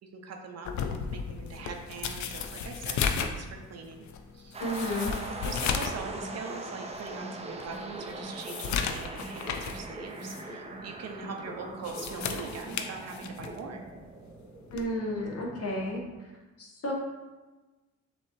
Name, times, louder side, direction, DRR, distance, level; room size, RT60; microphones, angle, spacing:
voice 1, 0.0-4.0 4.3-4.6 5.0-5.1 5.4-13.8, right 4 dB, 55° right, 3 dB, 0.7 m, -42 dB
sound 1, 0.6-6.0 6.4-6.5 7.1-7.2 7.6-9.8 10.2-10.4 11.7-13.6 14.7-14.9, left 7 dB, 70° left, 0.5 m, -34 dB
sound 2, 4.5-16.1, right 3 dB, 20° right, 0.5 m, -43 dB
voice 2, 4.6-5.2 14.7-16.0 16.6-16.9, left 1 dB, 55° left, -1 dB, 1.2 m, -32 dB
sound 3, 6.0-8.9 9.2-12.9 13.2-13.9, right 1 dB, ahead, 1.4 m, -44 dB
6.6 x 3.0 x 2.7 m, 1.2 s
cardioid pair, 90°, 30 cm